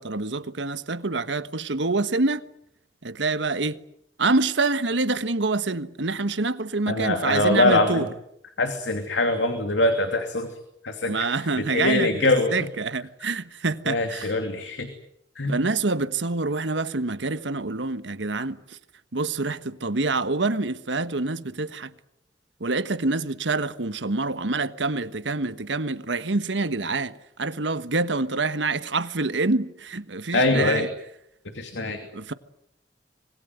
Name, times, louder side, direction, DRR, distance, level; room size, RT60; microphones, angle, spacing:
voice 1, 0.0-2.4 3.0-3.8 4.2-8.1 11.0-14.3 15.5-18.8 19.1-21.9 22.6-30.9 32.1-32.3, right 3 dB, 80° right, 1.3 m, -26 dB
voice 2, 6.9-8.1 8.6-10.5 10.8-11.3 11.6-12.5 13.9-14.9 15.4-15.6 30.3-30.9 31.5-32.0, left 2 dB, 80° left, 2.8 m, -23 dB
26.0 x 20.5 x 9.4 m
head